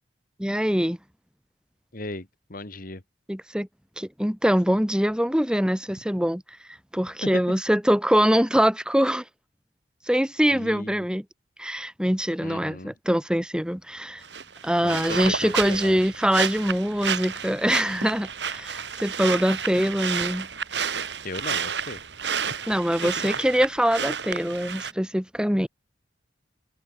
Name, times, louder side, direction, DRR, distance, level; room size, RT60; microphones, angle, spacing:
voice 1, 0.4-1.0 3.3-3.7 4.0-6.4 6.9-9.2 10.1-11.2 11.6-14.2 14.6-20.5 22.7-25.7, equal, 5° right, 2.5 m, -23 dB
voice 2, 1.9-3.0 7.2-7.4 10.5-11.1 12.4-12.9 14.8-16.0 21.2-22.0 23.0-23.3, left 2 dB, 50° left, 2.5 m, -36 dB
sound 1, 14.2-24.9, right 7 dB, 70° right, 3.0 m, -31 dB
head